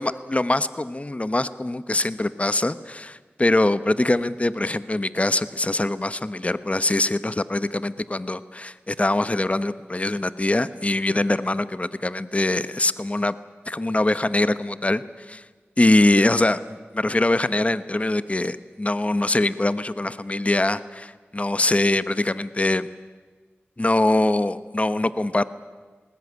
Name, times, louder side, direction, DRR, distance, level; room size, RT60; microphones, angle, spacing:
voice 1, 0.0-13.3 13.7-15.4 15.8-22.9 23.8-25.4, left 2 dB, 30° left, 14 dB, 0.9 m, -23 dB
20.0 x 20.0 x 9.6 m, 1.4 s
wide cardioid pair, 50°, 4 cm